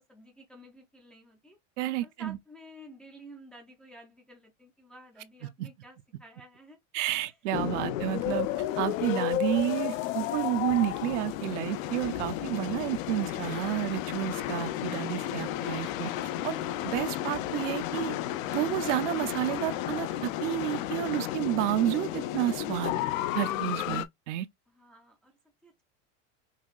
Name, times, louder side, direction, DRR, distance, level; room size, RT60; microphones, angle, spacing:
voice 1, 0.0-1.6 2.0-6.8 7.3-7.4 7.8-8.0 12.7-12.8 24.7-25.8, equal, 5° left, 0.4 m, -52 dB
voice 2, 1.8-2.4 5.6-5.7 6.9-8.5 8.8-16.1 16.4-16.6 16.8-18.2 18.5-23.0 23.3-24.5, right 14 dB, 65° right, 0.6 m, -30 dB
sound 1, 7.5-24.0, left 13 dB, 90° left, 0.7 m, -32 dB
5.7 x 2.6 x 2.3 m
supercardioid pair, 180°, 39 cm